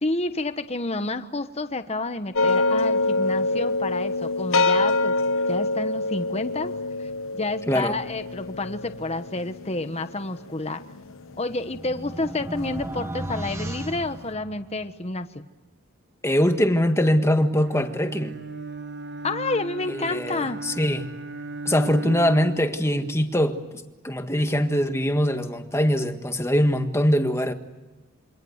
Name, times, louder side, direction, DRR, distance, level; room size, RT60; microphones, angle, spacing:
voice 1, 0.0-5.2 5.5-6.7 7.0-10.8 11.4-15.5 19.2-20.6, left 2 dB, 30° left, 1.1 m, -29 dB
sound 1, 2.3-11.5, left 2 dB, 65° left, 1.1 m, -25 dB
voice 2, 7.7-8.0 16.2-18.4 19.9-21.1 21.6-23.6 24.0-27.5, equal, 10° left, 1.7 m, -22 dB
sound 2, 11.0-15.0, right 1 dB, 10° right, 1.1 m, -35 dB
Bowed string instrument, 17.6-22.9, right 2 dB, 50° right, 1.1 m, -36 dB
28.0 x 25.0 x 8.0 m
head